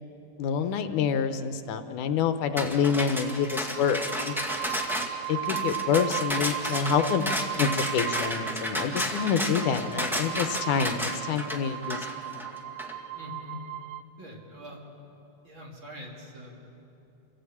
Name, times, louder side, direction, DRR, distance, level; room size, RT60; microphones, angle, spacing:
voice 1, 0.4-4.4 5.3-12.0, left 7 dB, 80° left, 8 dB, 2.4 m, -27 dB
sound 1, 2.6-12.9, equal, ahead, 0.8 m, -32 dB
sound 2, 3.2-14.0, right 14 dB, 75° right, 2.1 m, -37 dB
voice 2, 13.1-13.6 14.2-14.8 15.4-16.7, left 1 dB, 40° right, -2 dB, 3.6 m, -44 dB
28.5 x 16.5 x 8.5 m, 2.8 s
omnidirectional pair, 3.6 m